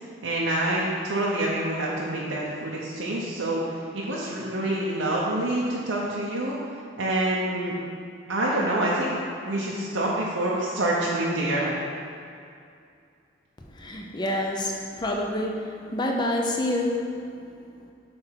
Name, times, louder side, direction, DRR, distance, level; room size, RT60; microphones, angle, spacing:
voice 1, 0.2-6.6 7.0-7.7 8.3-9.2 9.5-11.7, right 1 dB, 85° right, -5 dB, 0.8 m, -26 dB
voice 2, 13.6-17.2, left 1 dB, 20° left, 1 dB, 0.6 m, -28 dB
7.8 x 3.5 x 5.7 m, 2.5 s
head